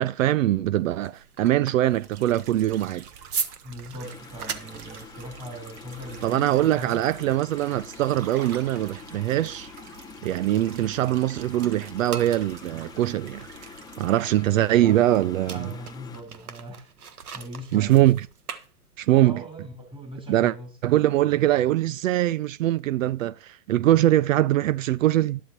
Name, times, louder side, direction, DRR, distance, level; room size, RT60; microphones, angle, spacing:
voice 1, 0.0-3.0 6.2-9.7 10.2-13.5 14.0-15.7 17.7-18.3 19.0-19.4 20.3-20.5 20.8-25.4, right 14 dB, 65° right, 0.5 m, -22 dB
sound 1, 0.8-11.3 11.6-19.3, right 6 dB, 85° right, 1.2 m, -40 dB
sound 2, 1.8-14.2, right 8 dB, 45° right, 1.5 m, -48 dB
voice 2, 3.6-7.0 14.8-15.1 15.5-16.9 17.3-18.1 19.1-20.7, equal, 10° right, 3.3 m, -40 dB
sound 3, 4.0-16.2, left 7 dB, 10° left, 0.5 m, -46 dB
12.5 x 11.0 x 2.9 m
hypercardioid pair, 105°, 44 cm